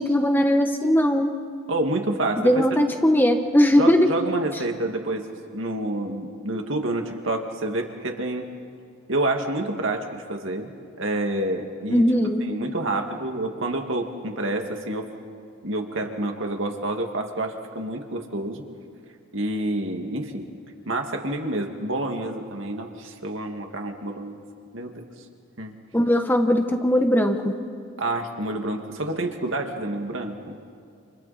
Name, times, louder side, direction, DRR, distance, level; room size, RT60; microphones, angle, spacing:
voice 1, 0.0-1.3 2.4-4.1 11.9-12.4 25.9-27.5, equal, 10° left, 5 dB, 1.3 m, -19 dB
voice 2, 1.7-2.7 3.8-5.2 5.5-8.5 9.1-10.7 11.0-12.0 12.4-15.1 15.6-18.6 19.3-20.5 20.9-24.4 24.7-25.0 25.6-25.7 28.0-30.6, right 1 dB, 65° right, 3 dB, 2.2 m, -28 dB
29.5 x 28.5 x 4.3 m, 2.3 s
head